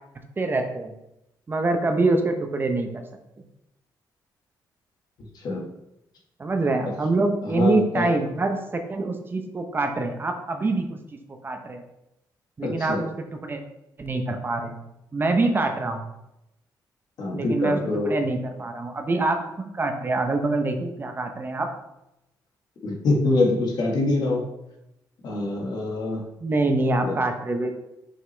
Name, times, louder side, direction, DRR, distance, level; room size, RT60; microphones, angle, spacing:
voice 1, 0.4-1.0 1.5-2.9 6.4-11.0 11.4-11.8 12.6-13.6 14.0-14.8 15.1-16.0 17.3-19.4 19.7-21.7 26.4-27.7, right 2 dB, 30° right, 5 dB, 0.8 m, -25 dB
voice 2, 7.4-8.1 12.6-13.0 17.2-18.1 22.8-24.5 25.2-26.2 27.0-27.1, left 2 dB, 65° left, 0 dB, 1.6 m, -24 dB
5.8 x 5.7 x 3.3 m, 0.88 s
cardioid pair, 110°, 8 cm